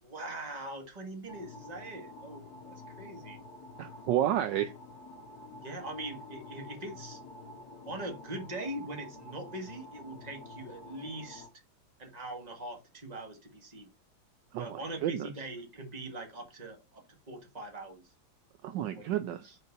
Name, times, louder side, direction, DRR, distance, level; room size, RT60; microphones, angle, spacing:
voice 1, 0.0-3.4 5.6-7.2 7.9-11.5 12.0-13.9 14.6-18.0 18.9-19.1, right 1 dB, 20° right, 1.5 m, -42 dB
sound 1, 1.3-11.5, left 2 dB, 55° left, 1.5 m, -49 dB
voice 2, 3.8-4.7 14.5-15.3 18.6-19.6, right 11 dB, 75° right, 1.1 m, -31 dB
5.2 x 4.2 x 5.3 m
omnidirectional pair, 2.2 m